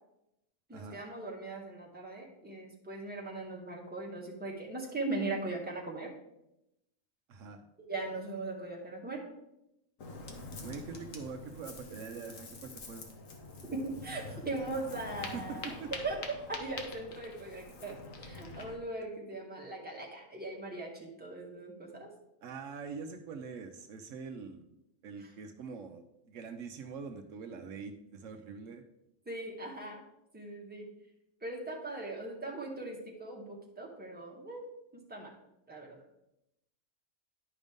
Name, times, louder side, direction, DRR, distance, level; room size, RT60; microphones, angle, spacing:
voice 1, 0.7-6.1 7.8-9.2 13.7-15.7 16.0-16.2 16.5-22.1 25.2-25.3 29.3-30.0 30.3-30.9 31.4-34.6 34.9-35.3 35.7-36.0, right 2 dB, 5° right, -2 dB, 1.4 m, -39 dB
voice 2, 7.3-7.6 10.6-13.1 15.3-15.9 22.4-24.7 25.0-28.8, right 5 dB, 75° right, 6 dB, 1.0 m, -44 dB
Ocean, 10.0-18.8, left 3 dB, 80° left, 1.4 m, -45 dB
11.0 x 5.2 x 3.6 m, 0.85 s
omnidirectional pair, 1.4 m